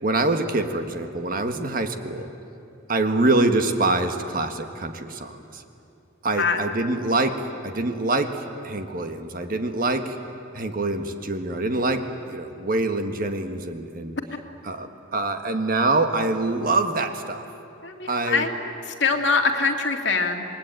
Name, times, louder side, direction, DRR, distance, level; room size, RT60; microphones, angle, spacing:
voice 1, 0.0-2.3 2.9-5.6 6.2-10.2 10.5-14.1 14.6-17.4 18.1-18.5, right 2 dB, 45° right, 7 dB, 1.6 m, -25 dB
voice 2, 17.8-18.6 18.9-20.4, left 4 dB, 65° left, 3 dB, 2.2 m, -23 dB
27.5 x 21.0 x 9.0 m, 2.6 s
head